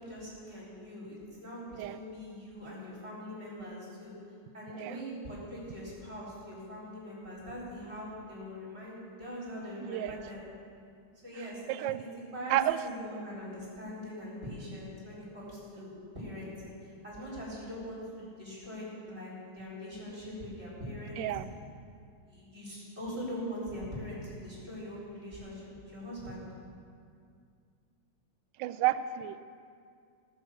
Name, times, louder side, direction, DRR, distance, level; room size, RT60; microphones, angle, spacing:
voice 1, 0.0-4.1 4.5-10.4 11.2-12.1 12.3-21.4 22.3-26.4, equal, 30° right, -6 dB, 4.4 m, -42 dB
voice 2, 9.8-10.2 11.7-12.0 12.5-12.8 21.2-21.5 28.6-29.4, right 14 dB, 75° right, 12 dB, 1.1 m, -31 dB
18.0 x 6.4 x 7.4 m, 2.3 s
omnidirectional pair, 2.3 m